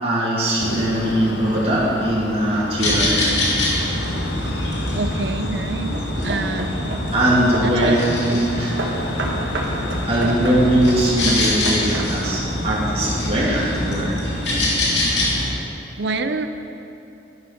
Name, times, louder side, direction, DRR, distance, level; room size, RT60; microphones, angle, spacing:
voice 1, 0.0-3.4 7.1-8.7 10.1-14.4, right 1 dB, 30° right, -7 dB, 2.6 m, -21 dB
sound 1, 0.6-14.1, left 2 dB, 90° left, 0.9 m, -33 dB
sound 2, 2.8-15.5, left 1 dB, 75° left, 2.9 m, -24 dB
Hammer / Wood, 4.6-5.1 5.7-8.1 8.8-12.4, right 1 dB, 85° right, 1.8 m, -30 dB
voice 2, 4.9-6.0 6.2-6.9 7.6-7.9 8.3-8.4 16.0-16.5, right 3 dB, 70° right, 9 dB, 0.7 m, -26 dB
11.5 x 10.5 x 5.8 m, 2.9 s
head